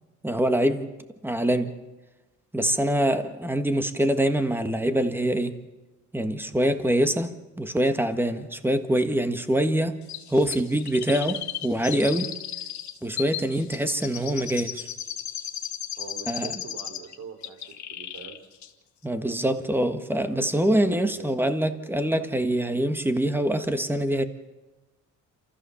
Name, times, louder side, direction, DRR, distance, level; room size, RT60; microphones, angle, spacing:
voice 1, 0.2-0.9 1.2-1.8 2.5-5.6 6.1-10.0 10.3-12.3 13.0-14.9 16.3-16.5 19.0-24.2, right 1 dB, 5° right, 1.6 m, -24 dB
Chirp tweet, 10.1-17.1 17.4-18.4 18.6-18.7, left 10 dB, 70° left, 1.6 m, -35 dB
voice 2, 16.0-17.6 17.9-18.4 20.3-21.4, right 6 dB, 70° right, 3.9 m, -42 dB
28.0 x 14.5 x 7.1 m
cardioid pair, 90°, 30 cm